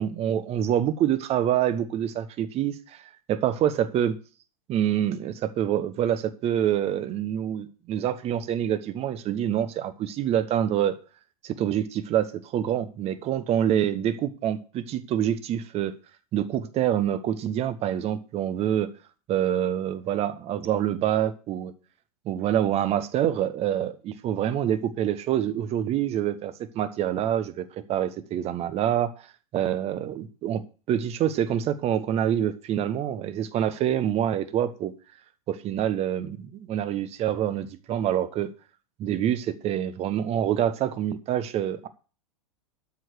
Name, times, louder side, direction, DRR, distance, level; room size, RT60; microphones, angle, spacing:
voice 1, 0.0-3.0 3.3-4.1 4.7-11.0 11.4-15.9 16.3-18.9 19.3-21.7 22.2-29.1 29.5-30.6 30.9-34.9 35.5-38.5 39.0-41.9, right 10 dB, 35° right, 1.2 m, -26 dB
13.0 x 4.7 x 8.2 m
hypercardioid pair, 100°, 19 cm